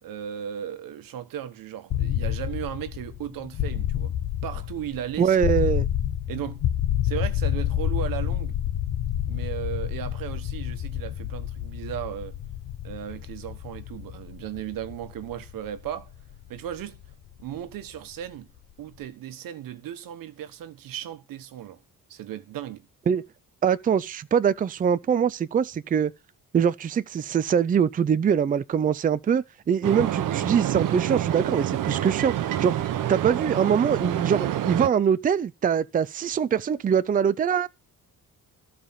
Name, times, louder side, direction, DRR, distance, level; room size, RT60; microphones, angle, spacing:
voice 1, 0.0-4.1 4.4-5.4 6.3-6.6 7.0-8.6 9.3-12.4 12.8-16.1 16.5-17.0 17.4-18.5 18.8-21.8 22.1-22.9, right 11 dB, 90° right, 1.3 m, -36 dB
sound 1, 1.9-17.7, left 11 dB, 65° left, 1.1 m, -29 dB
voice 2, 5.2-5.9 23.1-23.2 23.6-26.1 26.5-32.8 33.1-37.7, right 7 dB, 25° right, 0.5 m, -23 dB
sound 2, 29.8-34.9, right 12 dB, 70° right, 1.0 m, -27 dB
14.5 x 5.1 x 5.7 m
cardioid pair, 160°, 33 cm